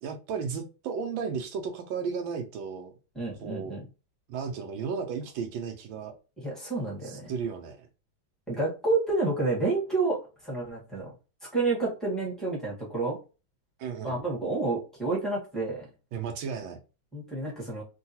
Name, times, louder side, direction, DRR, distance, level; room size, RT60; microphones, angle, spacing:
voice 1, 0.0-2.9 3.4-3.8 4.3-6.1 7.0-7.9 13.8-14.2 16.1-16.8, right 6 dB, 85° right, 6 dB, 1.4 m, -34 dB
voice 2, 3.1-3.8 6.4-7.3 8.5-10.2 10.4-11.1 11.5-13.2 14.0-15.9 17.1-17.8, right 3 dB, ahead, -5 dB, 1.0 m, -29 dB
3.7 x 2.3 x 2.7 m, 0.32 s
omnidirectional pair, 2.1 m